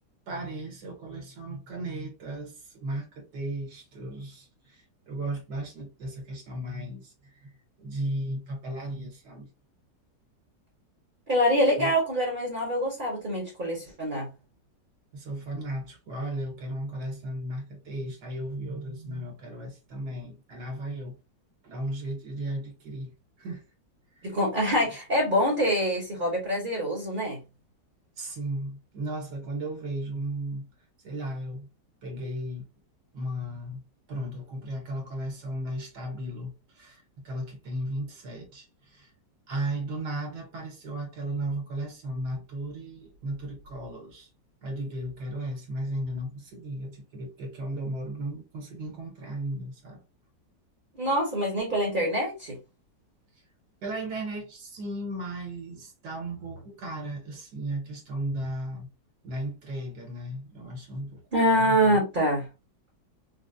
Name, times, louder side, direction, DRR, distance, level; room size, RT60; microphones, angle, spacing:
voice 1, 0.3-7.5 7.8-9.5 11.8-11.9 15.1-21.1 21.6-23.1 23.4-23.6 24.1-24.3 28.2-30.7 31.0-31.7 32.0-32.7 33.1-33.8 34.1-39.1 39.5-44.3 44.6-50.0 53.3-53.4 53.8-58.9 59.2-62.0, right 1 dB, 70° right, 1.5 m, -35 dB
voice 2, 11.3-14.3 24.2-27.4 51.0-52.6 61.3-62.4, equal, 40° right, 0.9 m, -25 dB
3.8 x 2.0 x 2.5 m
omnidirectional pair, 1.9 m